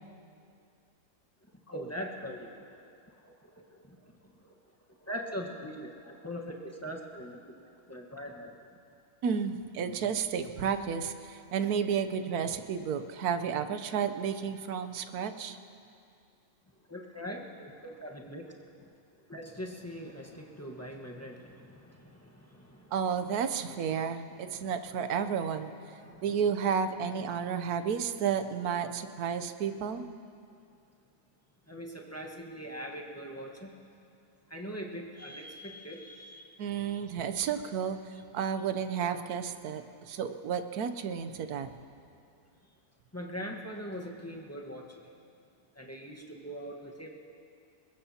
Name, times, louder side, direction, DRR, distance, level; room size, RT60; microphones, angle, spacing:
voice 1, 1.7-2.8 3.2-3.3 3.7-4.0 4.4-4.5 5.0-8.6 16.9-18.9 19.3-22.9 24.4-24.8 26.0-26.4 31.7-33.7 34.5-36.5 36.8-37.1 43.1-45.1 45.7-47.1, equal, 10° left, -1 dB, 1.1 m, -42 dB
voice 2, 9.2-15.6 22.9-25.7 26.2-30.0 36.6-41.7, right 7 dB, 70° right, 9 dB, 1.2 m, -32 dB
22.5 x 21.0 x 2.8 m, 2.5 s
omnidirectional pair, 1.7 m